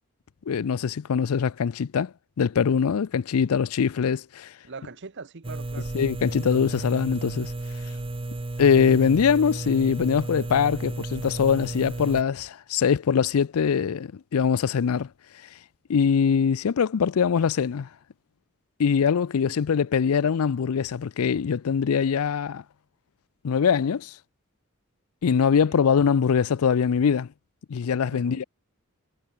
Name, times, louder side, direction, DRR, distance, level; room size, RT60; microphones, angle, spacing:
voice 1, 0.5-4.5 5.9-7.5 8.6-15.1 15.9-17.9 18.8-22.6 23.4-24.2 25.2-27.3 27.7-28.4, left 6 dB, 85° left, 0.4 m, -23 dB
voice 2, 4.6-5.9 19.5-19.8 25.6-25.8 28.1-28.4, right 4 dB, 55° right, 0.9 m, -42 dB
sound 1, 5.4-12.2, right 2 dB, 25° right, 0.6 m, -33 dB
head